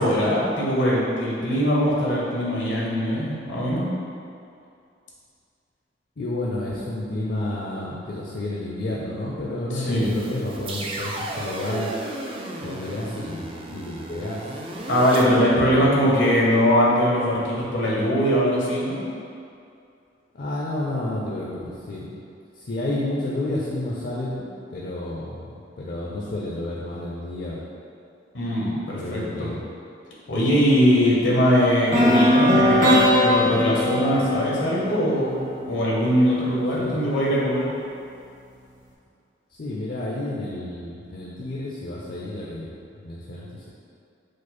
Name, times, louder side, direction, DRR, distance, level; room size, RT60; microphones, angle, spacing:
voice 1, 0.0-3.9 9.8-10.1 14.9-19.0 28.3-29.5 30.3-37.7, equal, 85° left, -6 dB, 1.0 m, -21 dB
voice 2, 6.2-11.9 12.6-14.5 15.5-15.9 20.3-22.1 22.5-24.4 24.7-27.6 29.0-29.6 36.8-37.0 39.5-42.7 43.0-43.7, left 1 dB, 55° left, -5 dB, 0.5 m, -30 dB
sound 1, 10.0-15.2, right 1 dB, 30° right, 0.4 m, -34 dB
sound 2, 31.9-35.9, left 1 dB, 50° right, 0.8 m, -20 dB
5.0 x 2.1 x 4.2 m, 2.4 s
head